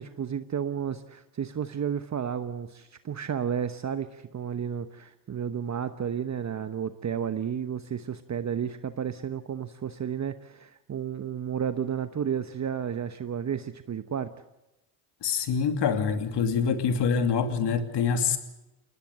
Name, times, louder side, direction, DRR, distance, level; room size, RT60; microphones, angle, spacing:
voice 1, 0.0-14.3, right 8 dB, 35° right, 10 dB, 1.1 m, -32 dB
voice 2, 15.2-18.4, left 6 dB, 60° left, 7 dB, 2.6 m, -25 dB
21.0 x 19.5 x 7.9 m, 0.96 s
supercardioid pair, 65°, 47 cm